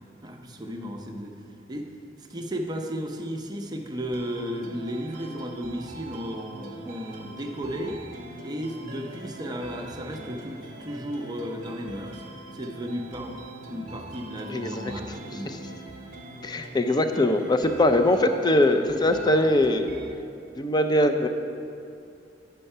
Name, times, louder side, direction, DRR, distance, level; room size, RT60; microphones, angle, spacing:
voice 1, 0.2-1.4 1.7-1.9 2.2-8.1 8.4-12.2 12.5-15.8, equal, 25° right, 2 dB, 0.6 m, -34 dB
sound 1, 4.1-20.1, right 2 dB, 50° right, 1.0 m, -42 dB
voice 2, 14.5-14.9 16.4-19.9 20.6-21.3, left 1 dB, 25° left, 7 dB, 0.5 m, -22 dB
9.0 x 5.7 x 5.4 m, 2.6 s
head